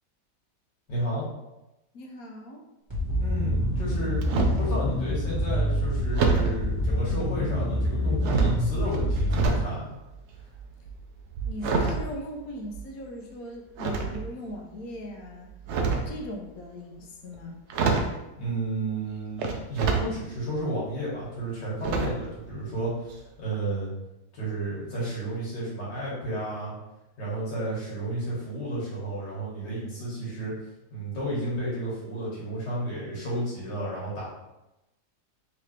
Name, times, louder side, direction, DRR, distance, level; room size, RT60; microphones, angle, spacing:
voice 1, 0.9-1.3 3.2-4.2 4.6-9.9 18.4-23.9 24.3-26.7 27.2-30.5 30.9-34.3, right 1 dB, 90° left, -7 dB, 2.2 m, -32 dB
voice 2, 1.9-2.6 11.5-15.5 16.1-17.7, equal, 65° left, 2 dB, 1.1 m, -39 dB
sound 1, 2.9-9.5, equal, 20° right, 1.2 m, -27 dB
sound 2, 3.8-4.7 6.1-6.6 7.4-7.9 8.2-9.7 10.0-13.0 13.8-14.5 15.5-16.2 17.3-17.4 17.7-18.2 19.4-20.1 20.5-20.6 21.8-22.3 22.6-22.8 23.1-23.2, right 4 dB, 75° right, 0.6 m, -27 dB
3.9 x 3.2 x 3.2 m, 0.95 s
omnidirectional pair, 1.8 m